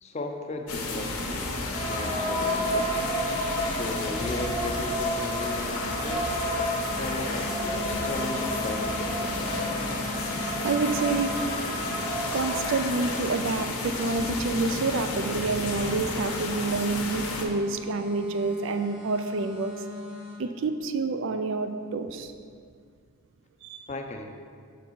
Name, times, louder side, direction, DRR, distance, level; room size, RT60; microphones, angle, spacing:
voice 1, 0.0-3.2 3.7-6.4 7.0-9.6 23.9-24.3, left 2 dB, 30° left, 5 dB, 0.4 m, -36 dB
sound 1, 0.7-17.4, left 2 dB, 90° left, 0.9 m, -32 dB
sound 2, 1.7-13.2, equal, 15° right, 1.2 m, -32 dB
sound 3, 6.8-20.3, left 3 dB, 85° right, 1.2 m, -40 dB
voice 2, 9.9-10.3 10.6-11.3 12.3-19.7 20.4-22.3 23.6-23.8, right 3 dB, 60° right, 8 dB, 0.4 m, -28 dB
7.1 x 4.0 x 4.6 m, 2.1 s
head